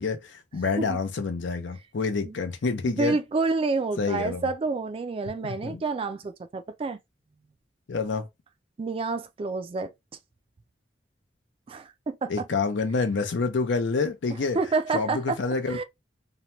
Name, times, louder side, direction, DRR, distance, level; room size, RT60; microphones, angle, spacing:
voice 1, 0.0-3.2 4.0-4.4 5.4-5.8 7.9-8.3 12.3-14.6 14.9-15.8, left 4 dB, 85° left, 0.6 m, -28 dB
voice 2, 2.8-7.0 8.8-9.9 11.7-12.3 14.5-15.4 15.7-15.8, right 3 dB, 30° right, 0.3 m, -28 dB
2.7 x 2.2 x 2.9 m
head